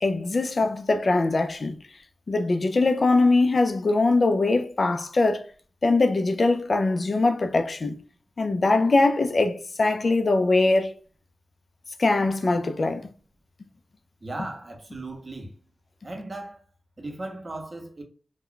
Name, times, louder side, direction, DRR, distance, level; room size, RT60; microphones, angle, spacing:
voice 1, 0.0-1.8 2.3-5.5 5.8-8.0 8.4-10.9 12.0-13.1, left 3 dB, 50° left, 0.4 m, -22 dB
voice 2, 14.2-15.5 16.0-16.6 17.0-18.0, right 2 dB, 40° right, 0.7 m, -37 dB
2.2 x 2.1 x 3.7 m
cardioid pair, 70°, 0 cm